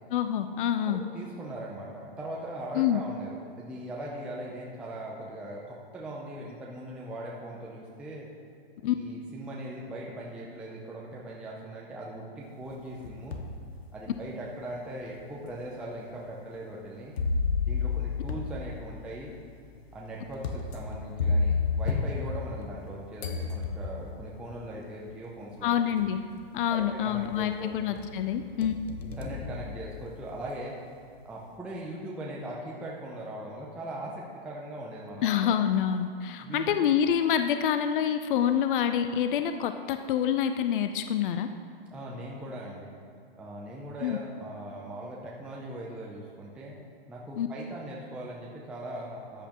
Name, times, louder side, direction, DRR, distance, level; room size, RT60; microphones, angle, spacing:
voice 1, 0.1-1.0 2.7-3.0 8.8-9.0 25.6-26.2 26.5-28.7 35.2-41.5 44.0-44.2 47.4-47.5, left 9 dB, 60° left, 9 dB, 0.5 m, -27 dB
voice 2, 0.9-3.3 3.6-8.3 8.8-13.4 13.9-17.1 17.6-19.3 19.9-25.7 26.7-28.0 29.0-30.7 31.2-35.5 36.4-36.7 41.9-42.9 43.4-46.7 47.1-49.5, right 1 dB, 5° right, -4 dB, 0.4 m, -40 dB
sound 1, 12.7-13.6 14.2-14.3 15.2-15.3 17.2-22.9 23.2-24.2 25.4-25.5 26.0-26.4 26.8-27.6 28.0-30.3, left 4 dB, 90° left, 1.1 m, -31 dB
13.5 x 8.4 x 2.9 m, 2.2 s
hypercardioid pair, 150°, 30 cm